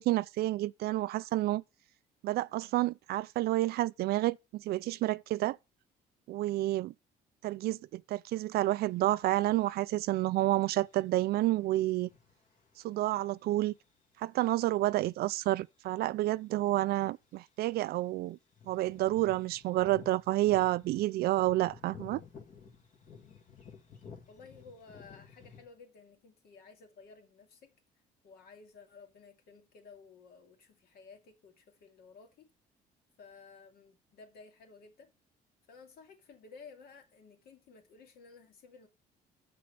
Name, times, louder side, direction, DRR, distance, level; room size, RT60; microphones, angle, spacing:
voice 1, 0.0-1.6 2.2-5.6 6.3-6.9 7.4-12.1 12.8-13.7 14.2-18.4 18.7-22.2, right 16 dB, 70° right, 0.4 m, -29 dB
sound 1, 8.5-14.2 15.9-16.0 16.3-16.9 17.2-17.3 17.5-17.7 18.5-25.6, left 6 dB, 50° left, 2.0 m, -54 dB
voice 2, 24.3-27.7 28.2-32.5 33.2-35.1 35.7-38.9, left 4 dB, 65° left, 2.5 m, -55 dB
7.0 x 6.2 x 5.5 m
cardioid pair, 110°, 17 cm